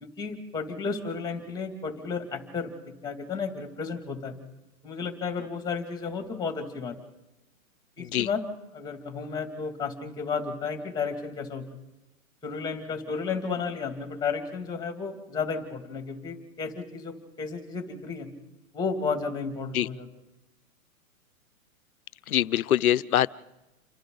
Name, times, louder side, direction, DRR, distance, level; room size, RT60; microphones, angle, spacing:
voice 1, 0.0-4.3 4.8-7.0 8.0-8.4 8.7-11.6 12.4-18.3 18.7-20.1, left 5 dB, 10° left, 5 dB, 2.5 m, -33 dB
voice 2, 8.0-8.3 19.7-19.9 22.3-23.3, left 12 dB, 75° left, 18 dB, 0.8 m, -24 dB
29.0 x 25.0 x 4.0 m, 1.0 s
hypercardioid pair, 145°, 43 cm